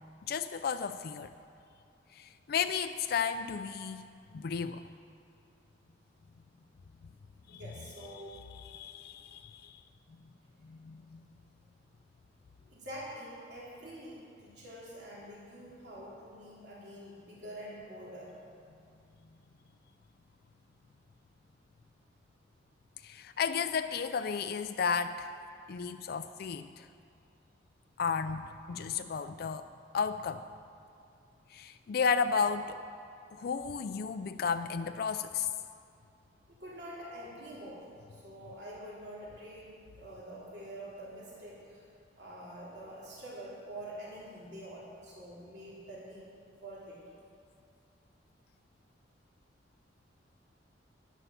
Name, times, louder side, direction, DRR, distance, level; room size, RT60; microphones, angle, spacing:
voice 1, 0.3-1.3 2.1-4.0 4.3-4.9 7.5-7.6 8.3-9.8 10.7-11.2 23.0-25.3 25.7-26.9 28.0-29.7 29.9-30.4 31.5-32.8 33.3-35.5, left 6 dB, 55° left, 9 dB, 0.4 m, -33 dB
voice 2, 7.5-8.4 12.7-18.3 36.5-37.9 38.2-41.8 42.2-46.2 46.6-47.0, right 1 dB, 65° right, -6 dB, 3.2 m, -46 dB
11.0 x 9.9 x 6.9 m, 2.5 s
head